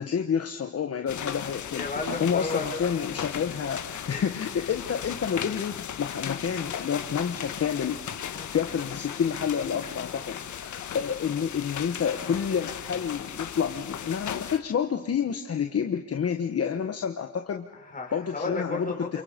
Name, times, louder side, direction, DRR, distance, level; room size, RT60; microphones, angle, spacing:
voice 1, 0.0-1.8 2.2-8.0 8.2-17.7 18.1-18.9, left 7 dB, 50° left, 5 dB, 1.4 m, -29 dB
sound 1, 1.1-14.6, left 9 dB, 70° left, 1.6 m, -36 dB
voice 2, 1.7-3.0 4.1-4.3 8.3-8.5 10.1-10.2 17.8-19.2, left 3 dB, 25° left, 1 dB, 5.3 m, -34 dB
29.0 x 28.5 x 5.3 m, 0.99 s
cardioid pair, 105°, 30 cm